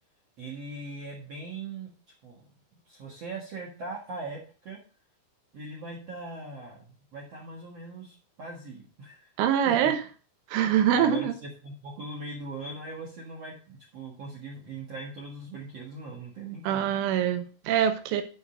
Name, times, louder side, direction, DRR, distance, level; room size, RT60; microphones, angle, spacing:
voice 1, 0.4-1.9 2.2-2.4 2.7-4.8 5.5-9.3 9.6-9.9 10.9-16.9, right 2 dB, 60° right, 1.6 m, -40 dB
voice 2, 9.4-10.0 10.5-11.4 16.7-18.2, right 9 dB, 85° right, 3.5 m, -24 dB
11.0 x 6.6 x 3.8 m
omnidirectional pair, 5.5 m